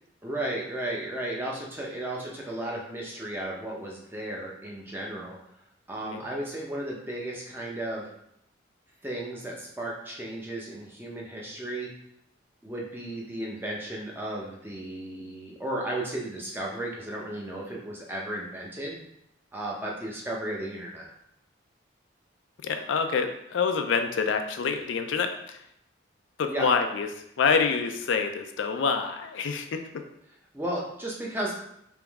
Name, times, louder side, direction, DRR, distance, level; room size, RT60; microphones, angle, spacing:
voice 1, 0.2-5.4 5.9-8.1 9.0-11.9 12.6-19.0 19.5-21.1 26.5-26.7 30.5-31.5, right 1 dB, 10° right, -3 dB, 0.6 m, -34 dB
voice 2, 22.6-25.6 26.4-27.1 27.4-30.0, left 5 dB, 75° left, 6 dB, 0.4 m, -27 dB
3.5 x 3.0 x 3.5 m, 0.76 s
head